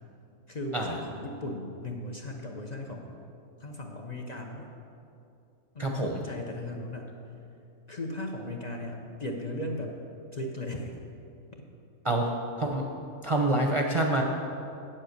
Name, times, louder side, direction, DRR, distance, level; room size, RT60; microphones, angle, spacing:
voice 1, 0.5-3.2 3.6-4.7 5.7-7.1 7.9-9.9 10.3-11.0, left 1 dB, 40° left, 1 dB, 0.8 m, -37 dB
voice 2, 5.8-6.2 12.0-12.3 12.6-12.9 13.2-14.2, right 2 dB, 30° right, 1 dB, 0.7 m, -26 dB
8.6 x 7.7 x 6.6 m, 2.7 s
omnidirectional pair, 1.3 m